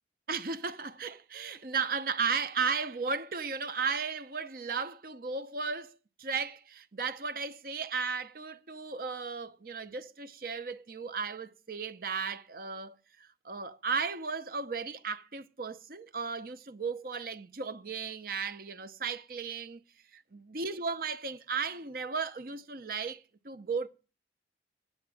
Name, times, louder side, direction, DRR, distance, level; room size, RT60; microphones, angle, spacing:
voice 1, 0.3-5.9 6.2-19.8 20.1-23.9, right 5 dB, 50° right, 0.8 m, -35 dB
9.8 x 7.2 x 9.1 m
head